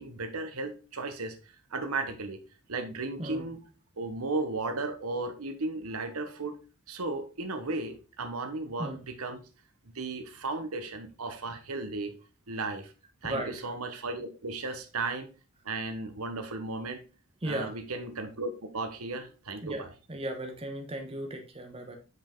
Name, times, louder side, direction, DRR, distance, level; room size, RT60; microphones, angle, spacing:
voice 1, 0.0-1.4 1.7-2.4 2.7-3.6 4.0-6.6 6.9-9.4 9.9-12.1 12.5-12.9 13.2-15.3 15.6-17.0 17.4-19.9, right 3 dB, 80° right, 7 dB, 1.2 m, -35 dB
voice 2, 13.2-13.7 17.4-17.7 19.6-22.0, right 1 dB, 25° right, 4 dB, 1.1 m, -36 dB
8.1 x 5.4 x 3.7 m, 0.33 s
head